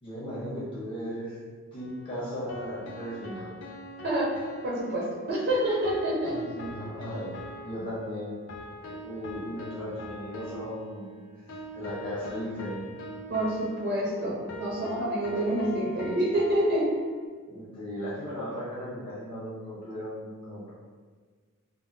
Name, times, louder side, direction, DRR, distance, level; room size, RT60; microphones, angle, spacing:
voice 1, 0.0-1.4 1.7-3.5 6.3-8.4 8.8-11.2 11.5-12.9 17.5-20.7, equal, 25° left, -9 dB, 1.0 m, -37 dB
sound 1, 1.8-17.3, equal, 65° left, 0.4 m, -43 dB
voice 2, 4.0-6.3 13.3-16.9, right 1 dB, 50° right, -6 dB, 0.5 m, -27 dB
3.5 x 2.1 x 2.6 m, 1.5 s
head